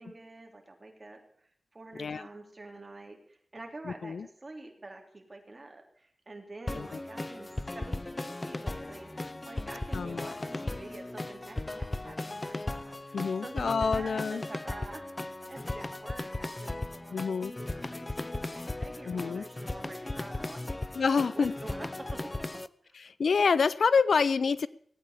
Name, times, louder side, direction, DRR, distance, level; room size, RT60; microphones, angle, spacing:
voice 1, 0.0-22.3 22.8-23.0, right 2 dB, 30° right, 2 dB, 3.4 m, -47 dB
voice 2, 3.9-4.3 6.8-6.9 9.9-10.4 13.1-14.4 17.1-17.5 19.0-19.4 20.9-21.5 23.0-24.7, left 5 dB, 75° left, 17 dB, 0.5 m, -27 dB
sound 1, 6.7-22.7, left 2 dB, 25° left, 0.5 m, -37 dB
18.0 x 8.9 x 8.2 m, 0.62 s
wide cardioid pair, 110°, 0 cm